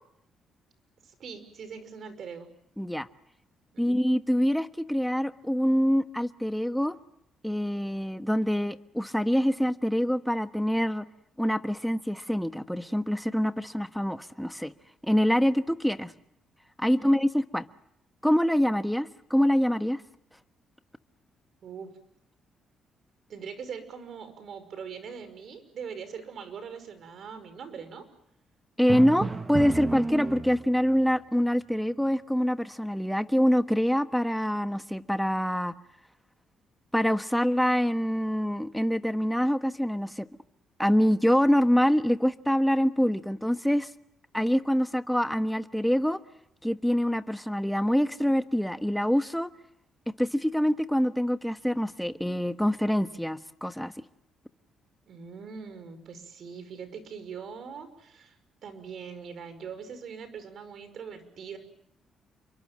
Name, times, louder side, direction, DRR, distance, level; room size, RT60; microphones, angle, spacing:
voice 1, 1.0-2.5 3.7-3.9 16.8-17.1 21.6-21.9 23.3-28.0 55.1-58.4 58.6-61.6, right 6 dB, 60° right, 5.5 m, -42 dB
voice 2, 2.8-3.1 3.8-6.9 7.4-11.0 11.4-14.7 15.0-16.1 16.8-17.6 18.2-20.0 28.8-35.7 36.9-40.3 40.8-43.9 44.3-46.2 46.6-49.5 50.2-53.9, equal, ahead, 1.3 m, -25 dB
Drum, 28.9-30.9, right 3 dB, 25° right, 1.5 m, -32 dB
29.0 x 23.5 x 7.6 m
cardioid pair, 90°, 0 cm